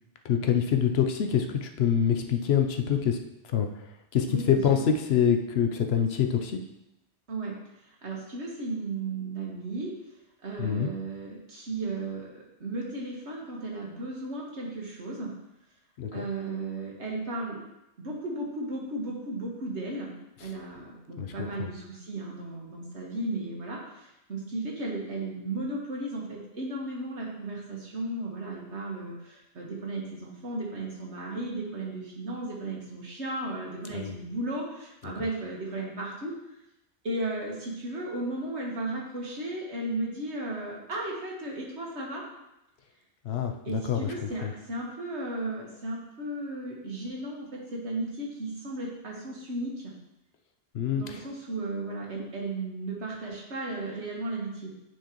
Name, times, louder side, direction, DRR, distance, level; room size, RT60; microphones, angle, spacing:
voice 1, 0.3-3.2 3.5-3.7 4.1-6.6 10.6-10.9 16.0-16.2 21.2-21.7 33.9-34.1 43.2-44.1 44.4-44.5 50.7-51.2, left 8 dB, 70° left, 5 dB, 0.9 m, -25 dB
voice 2, 4.3-4.8 7.3-7.5 8.0-9.9 10.4-15.3 16.1-17.6 18.0-36.3 37.0-42.2 43.7-49.9 51.0-54.7, right 2 dB, 80° right, -2 dB, 1.8 m, -35 dB
9.8 x 4.6 x 3.0 m, 0.88 s
omnidirectional pair, 1.1 m